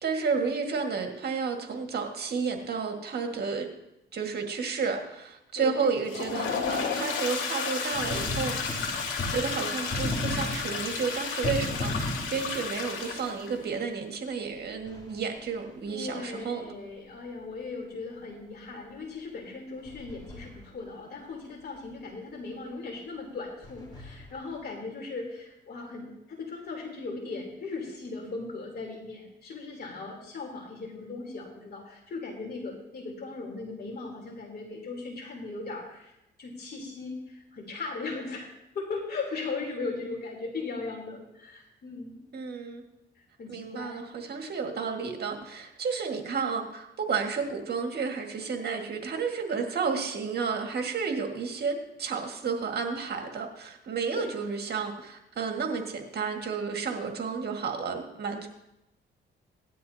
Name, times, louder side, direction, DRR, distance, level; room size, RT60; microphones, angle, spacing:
voice 1, 0.0-3.7 4.1-8.6 9.3-16.7 39.7-39.8 42.3-42.8 43.5-58.5, right 5 dB, 55° right, 3 dB, 1.8 m, -31 dB
voice 2, 5.6-5.9 15.9-36.1 36.4-38.5 38.7-42.2 43.2-44.1 54.2-54.4, left 3 dB, 55° left, 0 dB, 3.3 m, -38 dB
Toilet flush, 5.9-13.6, left 5 dB, 85° left, 2.9 m, -32 dB
sound 1, 7.9-13.2 14.8-15.8 19.8-20.9 23.6-24.6, left 2 dB, 20° left, 3.1 m, -36 dB
17.5 x 12.0 x 2.8 m, 0.89 s
cardioid pair, 90°, 20 cm